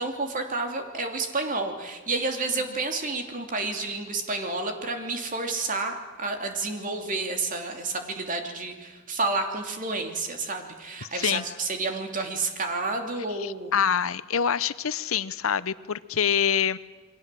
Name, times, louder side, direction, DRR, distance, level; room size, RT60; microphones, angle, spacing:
voice 1, 0.0-13.8, right 3 dB, 40° right, 4 dB, 2.9 m, -30 dB
voice 2, 13.4-16.8, left 8 dB, 80° left, 16 dB, 0.8 m, -25 dB
29.0 x 22.5 x 7.6 m, 1.3 s
head